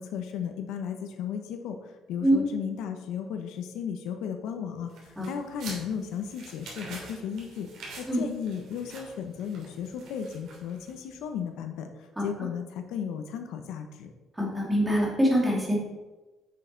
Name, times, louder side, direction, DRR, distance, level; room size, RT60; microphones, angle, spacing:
voice 1, 0.0-7.7 8.0-14.1, left 7 dB, 80° left, 6 dB, 1.0 m, -35 dB
sound 1, 4.9-11.1, right 3 dB, 60° right, 2.9 m, -46 dB
voice 2, 14.4-15.8, equal, 10° right, -3 dB, 2.3 m, -24 dB
9.6 x 6.5 x 4.0 m, 1.2 s
cardioid pair, 160°, 0 cm